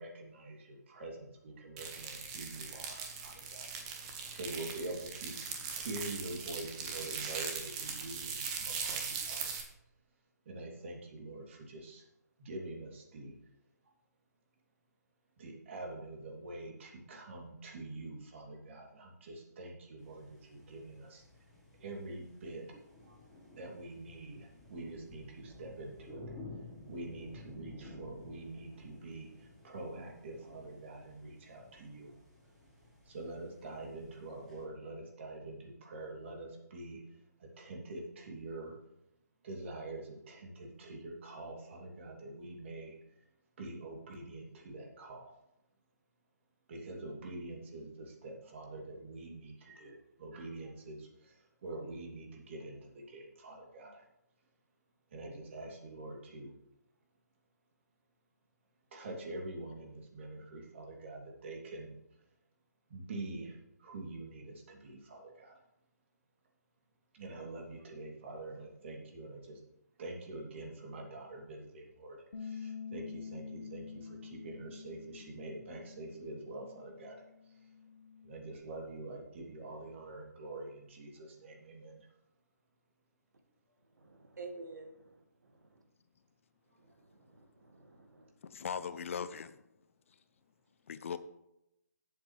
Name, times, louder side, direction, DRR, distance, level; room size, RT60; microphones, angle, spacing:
voice 1, 0.0-9.6 10.4-12.0 12.4-13.3 15.4-21.2 21.8-22.6 23.0-23.1 23.6-26.2 26.9-32.1 33.1-37.0 37.6-38.7 39.4-43.0 43.6-45.3 46.7-54.0 55.1-56.5 58.9-62.0 62.9-65.5 67.1-69.6 70.0-77.2 78.2-82.1, right 2 dB, 45° right, 0 dB, 3.0 m, -45 dB
sound 1, 1.8-9.6, right 6 dB, 25° right, 1.6 m, -40 dB
sound 2, 20.0-34.6, left 2 dB, ahead, 4.8 m, -54 dB
Bass guitar, 72.3-78.6, left 6 dB, 65° left, 1.7 m, -48 dB
voice 2, 83.9-85.8 86.8-88.3, right 3 dB, 75° right, 4 dB, 2.1 m, -51 dB
voice 3, 88.4-89.6 90.9-91.2, left 7 dB, 45° left, 14 dB, 0.6 m, -39 dB
16.5 x 8.0 x 3.3 m, 0.85 s
figure-of-eight pair, 145°, 10 cm